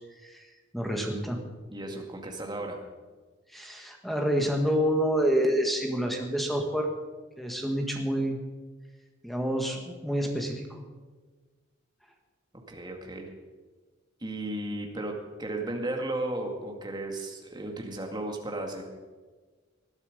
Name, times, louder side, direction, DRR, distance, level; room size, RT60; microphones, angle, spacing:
voice 1, 0.7-1.4 3.5-6.9 7.4-8.4 9.2-10.8, equal, ahead, 2 dB, 1.8 m, -28 dB
voice 2, 1.7-2.8 12.7-13.3 14.2-15.1 15.4-18.8, right 1 dB, 20° right, 2 dB, 2.2 m, -34 dB
20.0 x 11.5 x 5.3 m, 1.4 s
head